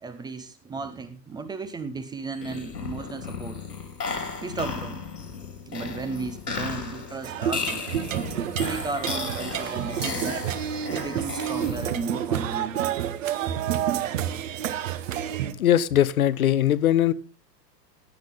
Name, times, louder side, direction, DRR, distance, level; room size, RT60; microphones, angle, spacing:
voice 1, 0.0-3.6 4.4-5.0 5.7-7.9 8.6-10.4 10.9-12.8, right 4 dB, 10° right, 0.7 m, -35 dB
sound 1, 2.3-12.2, left 5 dB, 75° left, 4.1 m, -35 dB
sound 2, 7.2-15.5, right 10 dB, 50° right, 1.2 m, -29 dB
voice 2, 15.6-17.1, left 11 dB, 60° left, 0.8 m, -20 dB
16.5 x 9.1 x 3.6 m
figure-of-eight pair, 100°, 49 cm